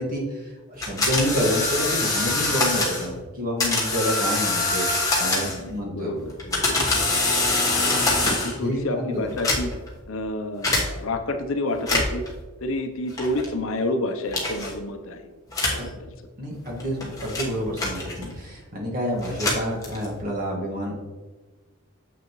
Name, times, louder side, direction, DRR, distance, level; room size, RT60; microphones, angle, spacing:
voice 1, 0.0-4.8 5.2-6.2 8.5-9.4 15.8-15.9 16.4-21.0, equal, 40° right, -2 dB, 1.6 m, -28 dB
sound 1, 0.8-3.1 3.6-5.7 6.3-8.6 9.3-9.9 10.6-10.9 11.7-12.3 13.2-13.5 14.3-14.7 15.5-15.9 16.7-18.4 19.2-20.2, left 2 dB, 15° left, 1.1 m, -24 dB
voice 2, 5.3-6.7 7.6-7.9 8.4-9.7 10.1-12.2 12.6-15.3 15.7-16.1, left 2 dB, 65° left, 6 dB, 0.6 m, -29 dB
7.6 x 6.2 x 3.0 m, 1.3 s
head